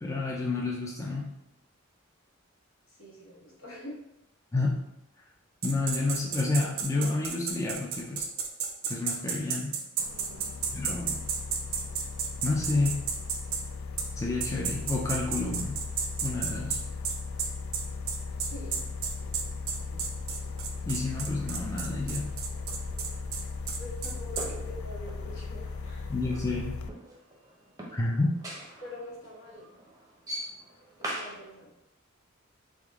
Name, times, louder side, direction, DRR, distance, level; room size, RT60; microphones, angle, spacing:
voice 1, 0.0-1.3 4.5-4.8 5.6-8.3 8.9-9.7 10.7-11.2 12.4-13.0 14.2-15.8 16.2-16.8 20.9-22.3 26.1-26.7 27.9-28.3, left 3 dB, 15° left, -2 dB, 0.4 m, -30 dB
voice 2, 2.9-4.0 10.1-10.5 18.3-18.9 19.2-20.1 23.6-26.1 28.8-29.7 31.0-31.7, left 1 dB, 70° left, -4 dB, 1.2 m, -45 dB
sound 1, 5.6-13.6 14.0-14.1 14.4-24.5, right 6 dB, 75° right, 0.5 m, -32 dB
sound 2, 10.0-26.9, left 4 dB, 90° left, 0.3 m, -37 dB
sound 3, 20.2-31.4, right 1 dB, 15° right, 0.7 m, -45 dB
3.5 x 2.6 x 3.5 m, 0.88 s
head